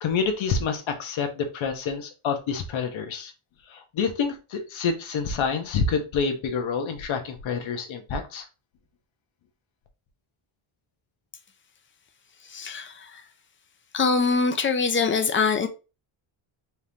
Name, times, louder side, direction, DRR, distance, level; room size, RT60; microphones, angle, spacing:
voice 1, 0.0-3.3 3.7-8.4, left 5 dB, 70° left, 1.2 m, -27 dB
voice 2, 12.5-13.2 13.9-15.7, left 5 dB, 25° left, 0.6 m, -23 dB
4.6 x 3.6 x 2.8 m
cardioid pair, 160°, 49 cm